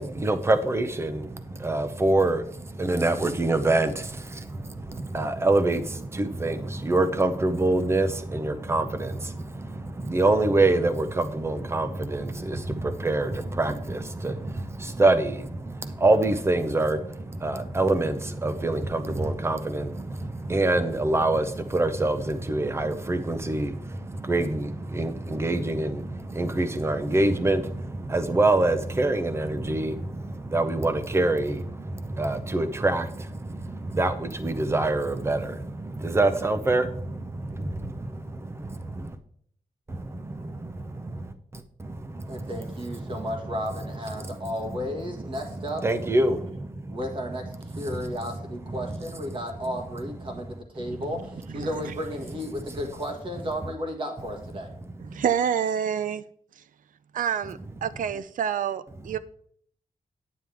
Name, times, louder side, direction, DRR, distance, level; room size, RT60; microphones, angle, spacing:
voice 1, 0.0-39.2 39.9-43.6 44.1-44.4 44.6-47.3 47.6-49.7 50.2-50.3 50.8-51.0 52.5-52.7 54.8-55.2 59.1-59.2, right 2 dB, 20° right, 0.7 m, -26 dB
voice 2, 42.3-45.8 46.1-46.4 46.9-54.7, equal, 40° right, 1.8 m, -33 dB
voice 3, 51.5-51.9 55.0-56.2 57.1-59.2, right 8 dB, 75° right, 0.5 m, -28 dB
9.3 x 9.2 x 3.5 m
wide cardioid pair, 175°, 14 cm